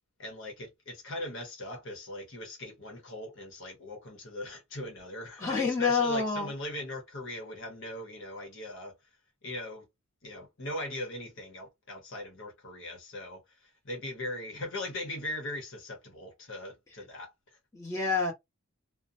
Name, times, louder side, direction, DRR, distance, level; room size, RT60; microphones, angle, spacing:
voice 1, 0.2-8.9 9.4-9.9 10.2-17.6, left 1 dB, 60° left, 1.0 m, -40 dB
voice 2, 5.4-6.5 17.7-18.3, left 4 dB, 15° left, 1.0 m, -28 dB
2.6 x 2.1 x 2.6 m
head